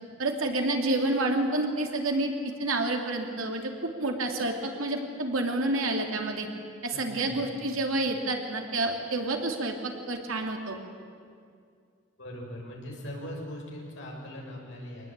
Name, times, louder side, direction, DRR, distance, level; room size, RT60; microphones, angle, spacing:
voice 1, 0.2-2.3 2.6-6.5 6.8-10.8, right 2 dB, 85° right, 3 dB, 3.0 m, -29 dB
voice 2, 6.9-7.4 12.2-15.1, equal, 60° left, -1 dB, 6.3 m, -40 dB
24.5 x 20.0 x 9.0 m, 2.3 s
head